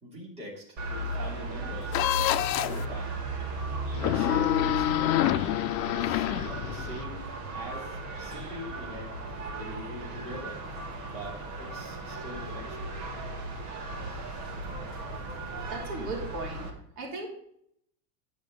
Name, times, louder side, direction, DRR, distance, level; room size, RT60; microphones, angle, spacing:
voice 1, 0.0-2.1 2.5-3.3 3.9-5.5 5.8-7.3 7.5-9.1 9.5-10.6 11.1-12.9, equal, 10° right, -6 dB, 3.1 m, -43 dB
sound 1, 0.8-16.7, right 2 dB, 35° right, 1.6 m, -36 dB
sound 2, 1.9-2.8 3.9-7.0, left 14 dB, 90° left, 0.8 m, -27 dB
voice 2, 15.7-16.7 17.0-17.3, right 3 dB, 55° right, 0 dB, 3.1 m, -36 dB
10.5 x 5.3 x 5.3 m, 0.70 s
supercardioid pair, 175°, 50 cm